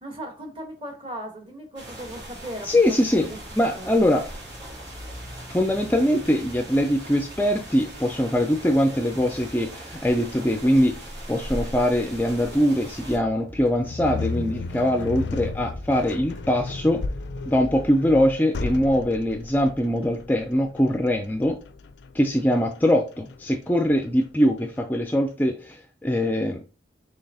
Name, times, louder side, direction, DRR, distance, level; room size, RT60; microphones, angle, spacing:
voice 1, 0.0-3.0 3.7-3.9, right 1 dB, 30° right, 3 dB, 1.1 m, -37 dB
sound 1, 1.8-13.2, right 1 dB, 90° right, 2.3 m, -39 dB
voice 2, 2.6-3.3 3.6-4.2 5.5-11.0 11.3-17.0 17.5-21.6 22.1-26.6, equal, 10° left, 4 dB, 0.3 m, -22 dB
sound 2, 12.1-15.3 15.7-18.3, left 1 dB, 45° right, 1.9 m, -42 dB
sound 3, 13.8-25.0, left 4 dB, 80° left, 0.4 m, -35 dB
5.8 x 3.3 x 2.7 m, 0.35 s
head